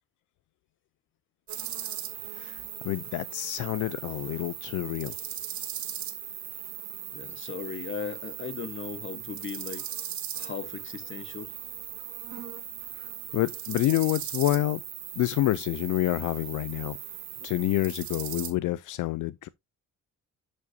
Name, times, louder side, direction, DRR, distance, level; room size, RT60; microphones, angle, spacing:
sound 1, 1.5-18.5, right 10 dB, 65° right, 1.5 m, -38 dB
voice 1, 2.3-5.2 13.0-13.1 13.3-14.8 15.2-17.0 17.4-19.5, left 15 dB, 75° left, 0.5 m, -28 dB
voice 2, 7.1-9.9 10.3-11.5, left 7 dB, 40° left, 1.1 m, -37 dB
11.0 x 5.1 x 2.6 m
cardioid pair, 90°, 31 cm